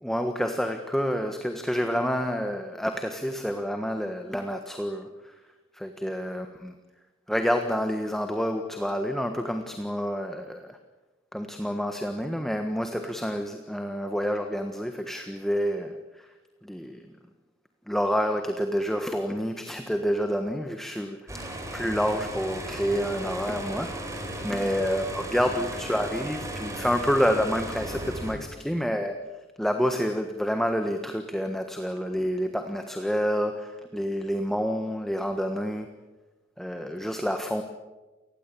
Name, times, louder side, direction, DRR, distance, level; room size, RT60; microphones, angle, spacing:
voice 1, 0.0-5.3 5.7-6.7 7.3-10.8 11.3-16.3 16.6-17.0 17.9-29.1 29.6-35.9 36.6-37.6, equal, ahead, 6 dB, 1.4 m, -28 dB
sound 1, 21.3-28.3, right 1 dB, 15° right, 5.1 m, -36 dB
28.5 x 20.0 x 8.6 m, 1.2 s
head